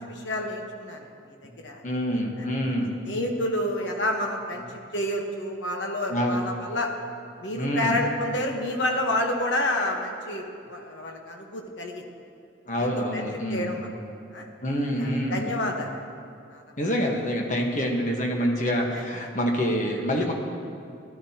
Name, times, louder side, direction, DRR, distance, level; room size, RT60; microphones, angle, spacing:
voice 1, 0.0-1.8 3.1-6.9 7.4-12.1 12.8-13.2 13.5-13.9 14.3-14.5 15.0-16.0 16.5-16.6 18.9-19.0, left 1 dB, 80° left, 2 dB, 1.2 m, -29 dB
voice 2, 1.8-2.9 6.1-6.4 7.5-8.0 12.7-13.8 14.6-15.5 16.8-20.3, equal, 40° left, 0 dB, 1.3 m, -26 dB
15.5 x 12.0 x 2.9 m, 2.4 s
head